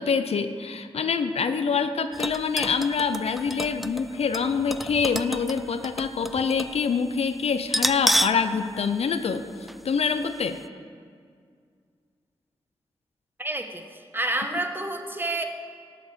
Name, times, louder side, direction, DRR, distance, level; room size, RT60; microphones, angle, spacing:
voice 1, 0.0-9.4 9.8-10.6, left 5 dB, 75° left, 9 dB, 0.6 m, -25 dB
sound 1, 2.1-6.8 7.1-7.2 7.7-8.5 8.8-8.9 9.7-9.9 10.2-10.3, equal, ahead, 0.3 m, -29 dB
voice 2, 13.4-15.4, right 2 dB, 20° right, 5 dB, 1.3 m, -29 dB
11.5 x 5.9 x 6.8 m, 2.1 s
cardioid pair, 50°, 11 cm